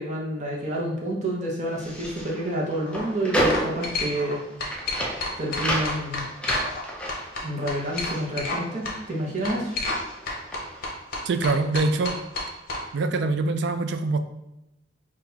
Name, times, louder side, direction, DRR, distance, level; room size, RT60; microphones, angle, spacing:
voice 1, 0.0-4.4 5.4-6.2 7.4-9.7, right 1 dB, 35° right, -3 dB, 0.9 m, -29 dB
sound 1, 1.7-9.2 9.4-10.9, equal, 5° left, 0.5 m, -31 dB
sound 2, 2.7-3.0 3.5-4.3 4.6-6.8 7.1-8.6 8.8-9.0 9.4-10.0 10.3-12.8, left 2 dB, 45° left, 0.8 m, -30 dB
voice 2, 11.3-12.2 12.9-14.2, right 3 dB, 55° right, 9 dB, 0.3 m, -24 dB
5.9 x 2.5 x 2.8 m, 0.91 s
head